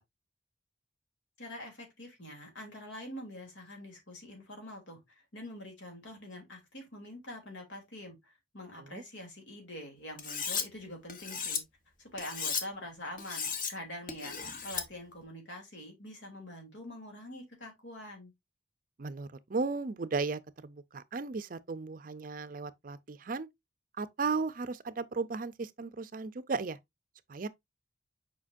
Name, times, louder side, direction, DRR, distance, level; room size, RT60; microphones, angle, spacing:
voice 1, 1.4-11.6 12.0-18.3, left 1 dB, 75° left, 3.0 m, -45 dB
Cutlery silverware, 10.2-10.6 11.1-11.6 12.2-12.6 13.2-13.7 14.1-14.8, left 6 dB, 45° left, 1.0 m, -35 dB
voice 2, 19.0-23.5 24.0-26.8 27.3-27.5, right 4 dB, 45° right, 0.5 m, -35 dB
7.4 x 5.1 x 2.5 m
head